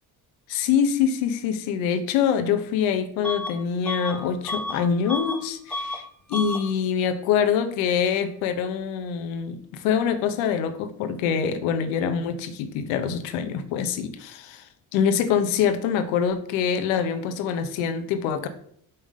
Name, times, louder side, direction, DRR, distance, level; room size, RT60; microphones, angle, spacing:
voice 1, 0.5-6.0 6.3-14.6 14.9-18.5, left 7 dB, 85° left, 9 dB, 0.8 m, -25 dB
Bus / Alarm, 3.2-3.6 3.9-5.4 5.7-6.0 6.3-6.7, left 1 dB, 5° left, 0.8 m, -31 dB
5.6 x 3.4 x 5.3 m, 0.64 s
hypercardioid pair, 55°, 44 cm